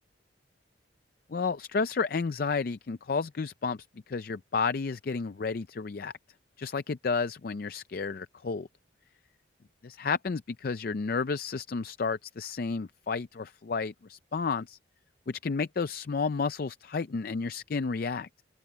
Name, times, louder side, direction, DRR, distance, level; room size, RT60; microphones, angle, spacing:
voice 1, 1.3-3.8 4.1-6.1 6.6-8.7 9.8-14.8 15.3-18.3, left 4 dB, 50° left, 0.4 m, -31 dB
open air
head